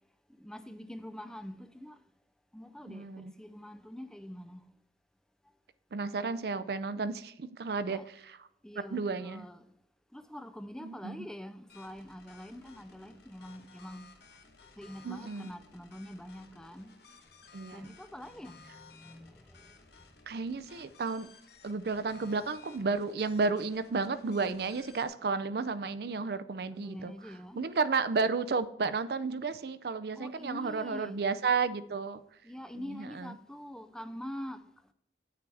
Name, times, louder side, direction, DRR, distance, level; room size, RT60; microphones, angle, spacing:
voice 1, 0.4-2.0 2.5-4.7 7.9-8.1 8.6-9.7 10.1-14.1 14.8-16.9 17.7-19.7 26.7-27.6 30.2-31.2 32.4-34.7, equal, 5° left, 0.4 m, -45 dB
voice 2, 2.9-3.3 5.9-8.4 8.9-9.5 10.8-11.2 15.0-15.5 17.5-17.9 20.3-21.3 21.6-27.1 27.5-32.2 32.7-33.3, right 4 dB, 65° right, 0.5 m, -32 dB
sound 1, 11.7-25.1, left 5 dB, 70° left, 1.1 m, -57 dB
9.3 x 8.4 x 3.4 m
head